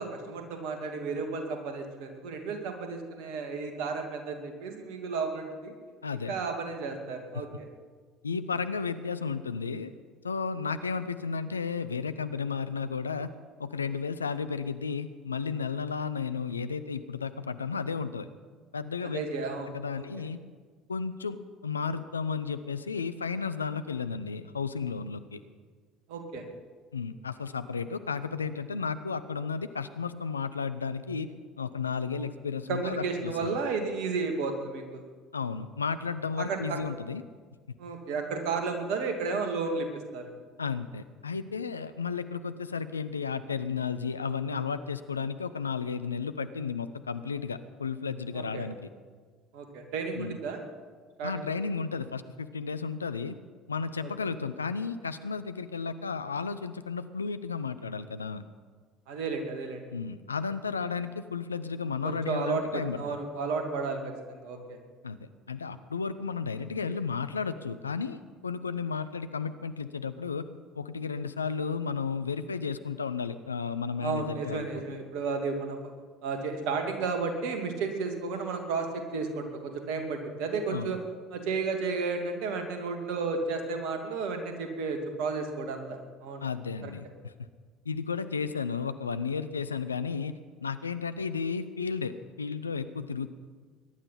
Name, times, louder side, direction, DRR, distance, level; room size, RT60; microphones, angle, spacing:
voice 1, 0.0-5.7 6.3-7.7 19.0-20.1 26.1-26.4 32.7-35.0 36.4-36.8 37.8-40.3 48.3-48.6 49.5-50.6 51.2-51.5 54.0-54.1 59.1-59.8 62.0-64.8 74.0-75.8 76.2-81.0 81.3-86.5 86.8-86.9, right 4 dB, 60° right, 5 dB, 2.3 m, -33 dB
voice 2, 6.0-6.4 8.2-9.9 10.2-13.3 13.6-18.3 18.7-19.2 19.6-20.4 20.9-21.4 21.6-25.4 26.9-31.3 31.6-33.6 35.3-37.2 40.6-48.8 50.2-50.4 51.2-53.4 53.7-58.4 59.9-63.0 65.0-70.5 70.7-75.0 80.7-81.0 86.4-87.3 87.8-93.3, left 5 dB, 85° left, 12 dB, 0.6 m, -33 dB
21.0 x 11.0 x 5.7 m, 1.5 s
figure-of-eight pair, 60°, 0 cm